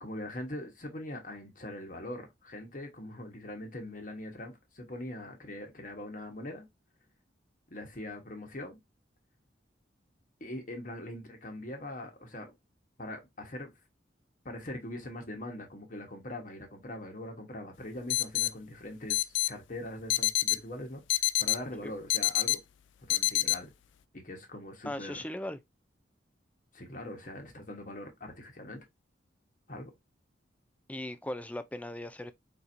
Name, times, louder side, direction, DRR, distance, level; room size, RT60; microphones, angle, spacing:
voice 1, 0.0-6.7 7.7-8.8 10.4-12.5 13.0-13.7 14.4-22.6 23.1-23.7 24.1-25.2 26.7-28.8 29.7-29.9, left 1 dB, 45° left, 1.2 m, -42 dB
sound 1, 18.1-18.5 19.1-19.5 20.1-20.6 21.1-21.6 22.1-22.6 23.1-23.6, left 18 dB, 85° left, 0.3 m, -26 dB
voice 2, 24.8-25.6 30.9-32.3, left 1 dB, 10° left, 0.4 m, -38 dB
4.4 x 4.0 x 2.6 m
head